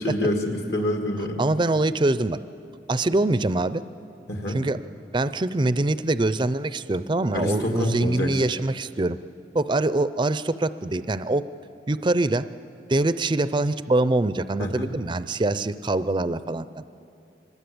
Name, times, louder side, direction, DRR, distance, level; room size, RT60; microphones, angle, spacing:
voice 1, 0.0-1.4 4.3-4.6 7.3-8.4 14.6-14.9, left 1 dB, 70° left, 2 dB, 2.1 m, -27 dB
voice 2, 1.4-2.4 2.9-3.8 4.5-4.8 5.1-9.2 9.5-11.4 11.9-12.5 12.9-16.9, right 2 dB, 25° right, 14 dB, 0.5 m, -24 dB
24.0 x 20.5 x 8.6 m, 2.6 s
head